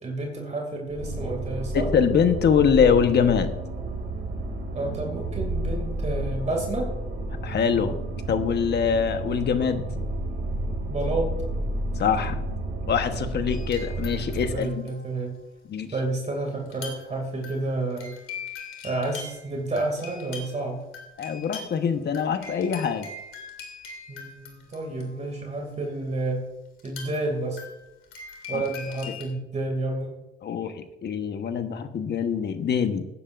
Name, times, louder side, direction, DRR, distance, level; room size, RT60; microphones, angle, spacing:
voice 1, 0.0-1.9 4.7-6.9 10.9-11.3 14.5-15.4 15.9-18.2 18.8-20.9 24.1-26.4 26.8-27.6 28.5-30.1, right 2 dB, 35° right, 1 dB, 2.5 m, -30 dB
sound 1, 0.9-14.6, right 2 dB, 65° right, 2.6 m, -31 dB
voice 2, 1.7-3.6 7.4-8.0 8.3-9.8 12.0-12.4 12.9-14.8 15.7-15.9 21.2-23.1 28.5-28.6 30.4-33.0, left 7 dB, 60° left, 8 dB, 1.2 m, -23 dB
sound 2, 13.5-14.4 14.6-15.4 16.6-17.2 17.4-25.4 26.8-29.2, left 5 dB, 85° left, 2.7 m, -42 dB
17.0 x 9.9 x 2.6 m, 0.95 s
cardioid pair, 90°, 20 cm